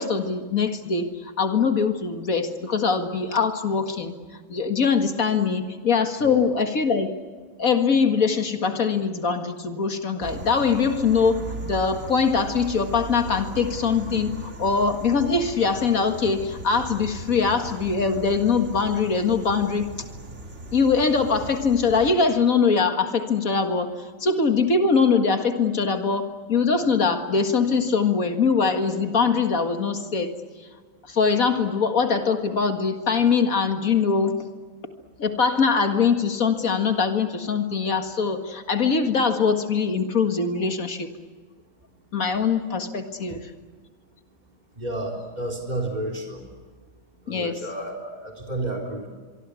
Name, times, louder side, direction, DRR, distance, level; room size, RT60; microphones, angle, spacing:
voice 1, 0.0-4.1 4.5-7.1 7.6-19.9 20.7-30.3 31.1-34.3 35.2-41.1 42.1-43.5 47.3-47.6, left 5 dB, 75° left, 6 dB, 2.2 m, -22 dB
sound 1, 10.2-22.1, right 2 dB, 55° right, 3.1 m, -38 dB
voice 2, 44.8-46.4 47.3-49.1, right 1 dB, 30° right, 1 dB, 4.0 m, -31 dB
25.0 x 24.0 x 8.3 m, 1.5 s
omnidirectional pair, 1.5 m